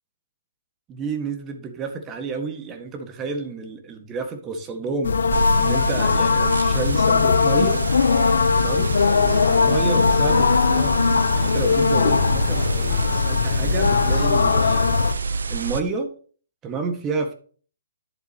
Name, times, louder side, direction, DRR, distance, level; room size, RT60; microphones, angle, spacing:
voice 1, 0.9-7.8 8.5-11.0 11.3-15.0 15.5-16.1 16.6-17.3, right 4 dB, 20° right, 5 dB, 1.7 m, -30 dB
sound 1, 5.0-15.1, left 5 dB, 75° left, 0.8 m, -19 dB
sound 2, 5.3-15.8, right 5 dB, 80° right, 0.8 m, -28 dB
10.5 x 7.4 x 3.0 m, 0.42 s
hypercardioid pair, 140°, 0 cm